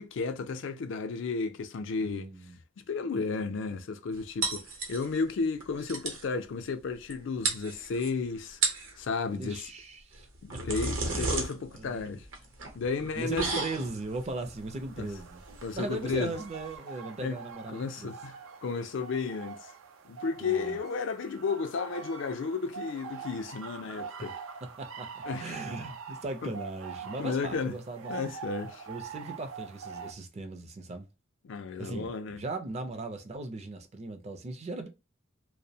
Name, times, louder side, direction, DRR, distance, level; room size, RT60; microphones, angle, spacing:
voice 1, 0.0-2.3 2.9-8.6 9.0-9.7 10.4-12.3 12.7-13.5 15.0-15.1 15.6-16.3 17.2-17.4 17.7-19.7 20.0-24.4 25.3-25.6 26.4-26.5 27.2-27.7 28.1-28.9 31.4-32.4, left 4 dB, 65° left, 0.4 m, -33 dB
voice 2, 2.0-2.6 9.3-10.6 11.1-11.4 11.7-12.0 13.1-15.4 15.7-18.1 20.4-20.8 24.2-24.3 24.6-28.1 28.9-31.1 31.8-34.9, right 2 dB, 35° right, 0.4 m, -38 dB
sound 1, 4.4-5.3 5.6-5.7 5.9-6.3 7.1-7.2 7.4-8.1 8.5-9.0 10.1-16.8, right 3 dB, 70° right, 0.8 m, -34 dB
sound 2, 14.0-30.1, right 6 dB, 90° right, 0.4 m, -44 dB
2.6 x 2.0 x 2.7 m
head